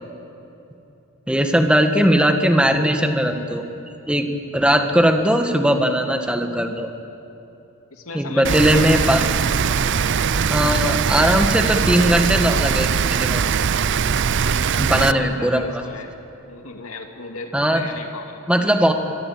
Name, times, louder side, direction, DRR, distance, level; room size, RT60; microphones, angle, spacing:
voice 1, 1.3-3.6 4.1-4.3 4.5-6.9 8.1-9.2 10.5-13.4 14.8-15.6 17.5-17.8 18.5-18.9, equal, 5° right, 5 dB, 1.7 m, -19 dB
voice 2, 7.9-9.2 9.7-9.9 14.5-16.1 16.5-18.5 18.9-19.0, left 3 dB, 75° left, 4 dB, 2.4 m, -36 dB
Rain, 8.4-15.1, right 6 dB, 60° right, 0.6 m, -21 dB
24.5 x 22.0 x 8.7 m, 2.9 s
head